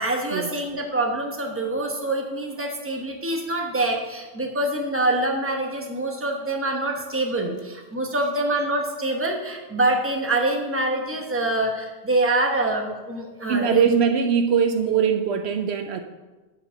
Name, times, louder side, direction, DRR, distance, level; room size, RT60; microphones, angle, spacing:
voice 1, 0.0-13.9, right 2 dB, 10° right, 1 dB, 1.0 m, -25 dB
voice 2, 13.5-16.0, right 7 dB, 75° right, 7 dB, 0.8 m, -21 dB
7.4 x 5.0 x 6.3 m, 1.2 s
omnidirectional pair, 1.1 m